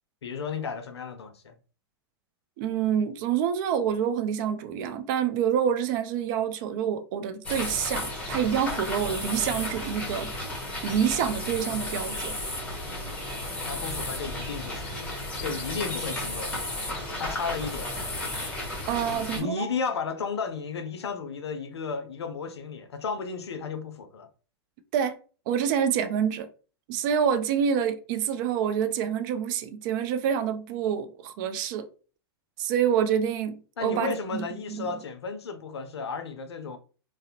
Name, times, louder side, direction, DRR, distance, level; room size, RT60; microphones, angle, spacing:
voice 1, 0.2-1.5 13.7-14.9 15.4-16.5 17.2-17.9 19.1-24.3 33.8-36.8, left 5 dB, 90° left, 0.5 m, -33 dB
voice 2, 2.6-10.3 10.8-12.3 18.9-19.7 24.9-25.2 25.5-26.5 26.9-31.9 32.6-34.2 34.7-35.0, right 8 dB, 50° right, 0.4 m, -27 dB
sound 1, 7.4-19.4, left 1 dB, 10° left, 0.9 m, -33 dB
2.4 x 2.0 x 2.7 m
hypercardioid pair, 110°, 13 cm